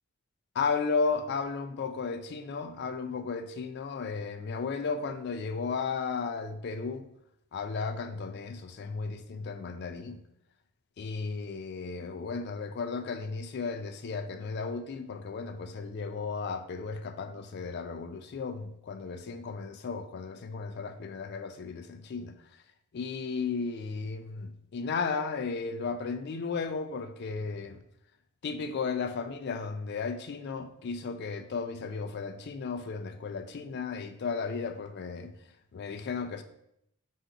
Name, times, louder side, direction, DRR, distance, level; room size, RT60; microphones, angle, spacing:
voice 1, 0.6-7.1 7.5-10.2 11.0-22.4 22.9-27.8 28.4-35.3 35.7-36.4, left 4 dB, 50° left, 0.3 m, -34 dB
4.6 x 2.6 x 3.5 m
head